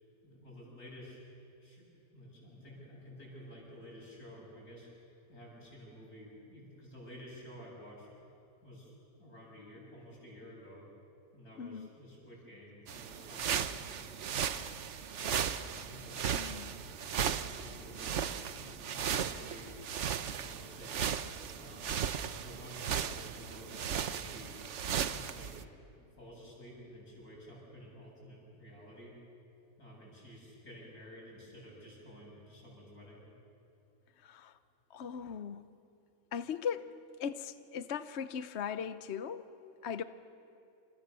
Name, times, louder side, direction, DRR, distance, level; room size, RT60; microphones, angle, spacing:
voice 1, 0.2-1.2 1.6-1.9 2.1-4.9 5.3-8.1 8.6-10.8 11.3-14.6 15.1-16.8 17.2-19.7 20.3-22.1 22.4-24.5 25.0-25.7 26.0-29.1 29.8-33.3, equal, 80° left, -3 dB, 8.6 m, -52 dB
voice 2, 11.6-11.9 16.3-16.8 34.2-34.6 34.9-35.7 36.3-36.9 37.2-40.0, left 7 dB, 55° left, 11 dB, 0.9 m, -39 dB
sound 1, 12.9-25.6, right 8 dB, 55° right, 1.1 m, -36 dB
29.0 x 27.5 x 6.9 m, 2.7 s
omnidirectional pair, 1.6 m